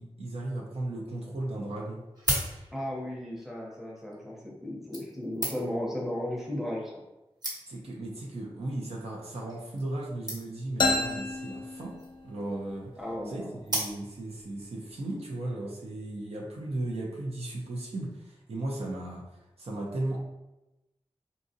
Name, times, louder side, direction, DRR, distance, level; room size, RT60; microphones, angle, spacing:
voice 1, 0.0-2.0 7.7-12.0 12.2-12.9 13.3-19.2 19.6-20.2, right 1 dB, 70° right, -2 dB, 0.7 m, -36 dB
sound 1, 1.9-3.1 4.0-4.1 4.9-5.9 6.7-6.8 7.1-7.2 7.4-7.9 8.7-8.9 9.2-9.3 9.5-9.6 9.8-9.9 10.3-10.7 11.8-12.2 13.7-14.3 14.9-15.0, right 1 dB, 40° right, 1.2 m, -34 dB
voice 2, 2.7-6.9 13.0-13.5, left 1 dB, 5° right, -3 dB, 0.9 m, -35 dB
sound 2, 10.8-12.5, left 2 dB, 45° left, 0.4 m, -30 dB
4.0 x 2.3 x 2.7 m, 0.98 s
wide cardioid pair, 70°, 11 cm